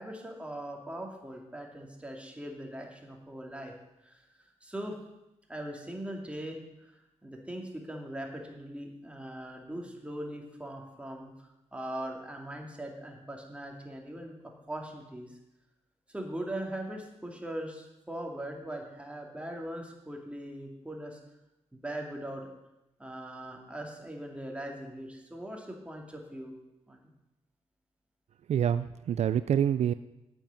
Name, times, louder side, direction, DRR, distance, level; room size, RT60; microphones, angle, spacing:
voice 1, 0.0-3.7 4.0-4.2 4.6-5.0 5.5-11.3 11.7-14.3 14.7-15.3 16.1-21.2 21.7-22.5 23.0-26.5 26.9-27.1, right 1 dB, 10° right, 0 dB, 2.4 m, -40 dB
voice 2, 28.5-29.9, right 9 dB, 65° right, 13 dB, 0.4 m, -26 dB
8.8 x 8.1 x 7.1 m, 0.93 s
cardioid pair, 90°, 12 cm